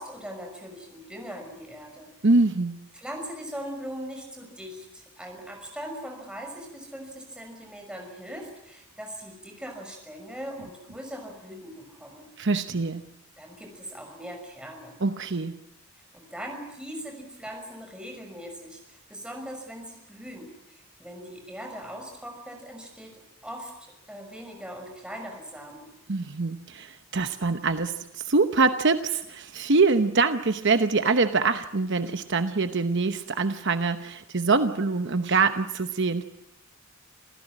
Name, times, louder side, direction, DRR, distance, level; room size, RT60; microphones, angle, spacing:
voice 1, 0.0-2.1 2.9-12.3 13.4-15.0 16.1-25.9, equal, 5° right, 2 dB, 6.0 m, -40 dB
voice 2, 2.2-2.8 12.4-13.1 15.0-15.6 26.1-36.2, right 3 dB, 55° right, 9 dB, 0.9 m, -24 dB
27.5 x 16.0 x 10.0 m, 0.87 s
head